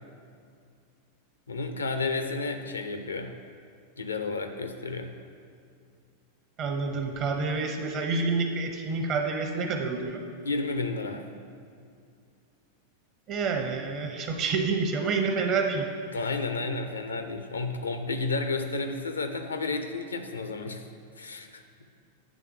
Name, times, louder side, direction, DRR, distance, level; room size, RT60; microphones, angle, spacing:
voice 1, 1.5-3.3 4.0-5.1 10.4-11.2 16.1-20.8 21.2-21.6, left 3 dB, 75° left, 7 dB, 0.5 m, -31 dB
voice 2, 6.6-10.2 13.3-15.9, right 4 dB, 35° right, 4 dB, 0.8 m, -28 dB
8.3 x 3.5 x 5.7 m, 2.3 s
figure-of-eight pair, 90°, 0 cm